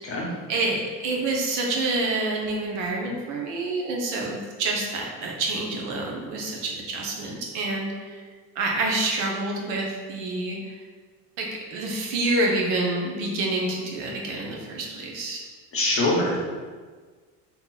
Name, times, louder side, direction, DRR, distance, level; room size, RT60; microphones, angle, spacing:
voice 1, 0.5-8.2 8.6-10.7 11.4-15.4, right 2 dB, 85° right, -1 dB, 0.8 m, -27 dB
voice 2, 15.7-16.4, left 2 dB, 35° left, -3 dB, 1.0 m, -23 dB
3.0 x 2.3 x 3.9 m, 1.5 s
cardioid pair, 115°, 39 cm